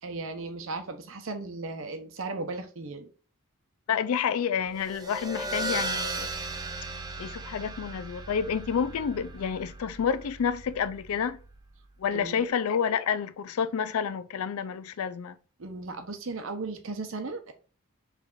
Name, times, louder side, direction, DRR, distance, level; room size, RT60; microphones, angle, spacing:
voice 1, 0.0-3.1 12.1-12.5 15.6-17.5, right 3 dB, 65° right, 0.7 m, -36 dB
voice 2, 3.9-6.3 7.2-11.4 12.0-15.4, left 7 dB, 80° left, 0.4 m, -29 dB
sound 1, 4.7-11.8, right 2 dB, 15° right, 0.4 m, -37 dB
4.9 x 3.3 x 2.4 m
head